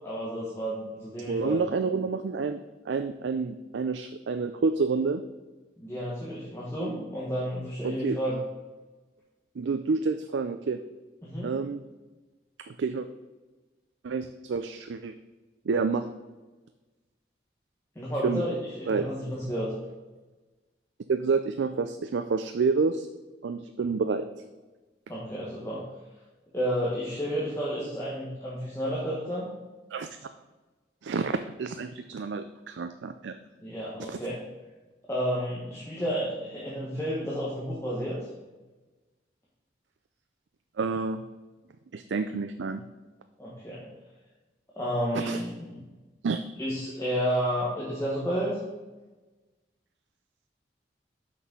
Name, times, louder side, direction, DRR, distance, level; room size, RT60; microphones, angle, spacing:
voice 1, 0.0-1.6 5.8-8.4 11.2-11.5 17.9-19.7 25.1-25.8 26.5-29.5 33.6-34.4 35.1-38.3 43.4-43.9 44.8-45.8 46.6-48.6, equal, 15° left, -7 dB, 1.4 m, -31 dB
voice 2, 1.3-5.2 7.8-8.2 9.6-10.8 11.4-11.8 12.6-13.1 14.0-15.1 15.7-16.1 18.2-18.4 18.9-19.1 21.1-23.1 23.4-24.4 29.9-30.1 31.0-33.3 34.1-34.2 40.8-41.2 41.9-42.8 45.1-45.4 46.2-46.4, right 4 dB, 90° right, 9 dB, 0.4 m, -29 dB
6.2 x 6.1 x 5.4 m, 1.2 s
head